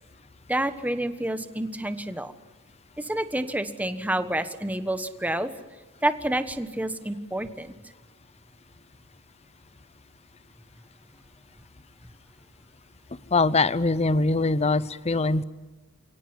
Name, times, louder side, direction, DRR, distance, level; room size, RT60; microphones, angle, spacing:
voice 1, 0.5-2.3 3.0-5.5 6.0-7.7, right 1 dB, 5° right, 10 dB, 1.3 m, -28 dB
voice 2, 13.3-15.4, left 3 dB, 30° left, 17 dB, 0.8 m, -22 dB
29.5 x 18.0 x 9.6 m, 1.2 s
head